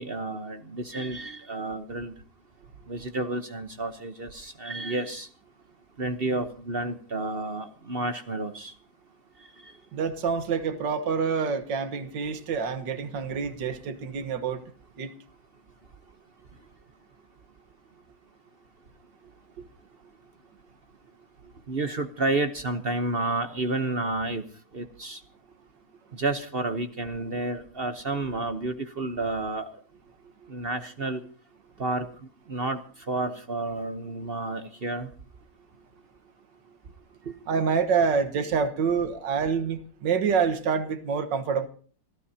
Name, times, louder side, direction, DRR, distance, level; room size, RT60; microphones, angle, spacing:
voice 1, 0.0-2.1 2.9-5.3 6.0-8.7 9.6-9.7 21.7-24.4 24.7-25.2 26.1-29.7 30.5-31.2 31.8-32.1 32.5-32.8 33.1-35.1 37.3-37.4, right 2 dB, 45° right, 0.8 m, -30 dB
voice 2, 9.9-14.6 15.0-15.1 19.6-19.7 30.4-30.5 37.5-41.7, right 6 dB, 60° right, 1.9 m, -27 dB
26.5 x 14.5 x 2.8 m
omnidirectional pair, 2.2 m